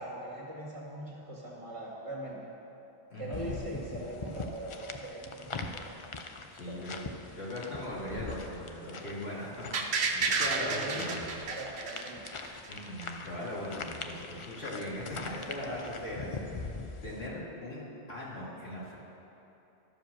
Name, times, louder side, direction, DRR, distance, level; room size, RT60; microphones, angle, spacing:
voice 1, 0.0-2.4 3.2-6.0 6.7-6.8 10.6-12.3 15.6-15.8, right 1 dB, 30° right, -4 dB, 1.9 m, -41 dB
voice 2, 3.1-3.5 6.5-7.0 7.3-11.3 12.7-16.7 17.0-17.8 18.1-18.9, left 1 dB, 65° left, -6 dB, 2.4 m, -39 dB
sound 1, 3.3-17.3, left 4 dB, 40° left, 0.4 m, -42 dB
sound 2, 9.7-12.7 13.0-13.1, right 4 dB, 70° right, 1.0 m, -31 dB
12.5 x 5.0 x 6.6 m, 2.9 s
omnidirectional pair, 1.1 m